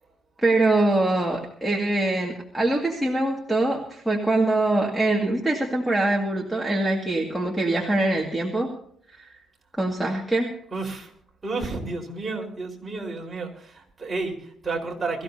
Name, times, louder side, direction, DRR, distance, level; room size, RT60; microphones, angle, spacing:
voice 1, 0.4-8.7 9.2-9.3 9.8-10.5, right 2 dB, 5° right, -2 dB, 2.1 m, -23 dB
voice 2, 10.7-11.1 11.4-15.2, right 3 dB, 20° right, -1 dB, 4.6 m, -31 dB
23.0 x 15.0 x 2.8 m, 0.63 s
cardioid pair, 140°, 0 cm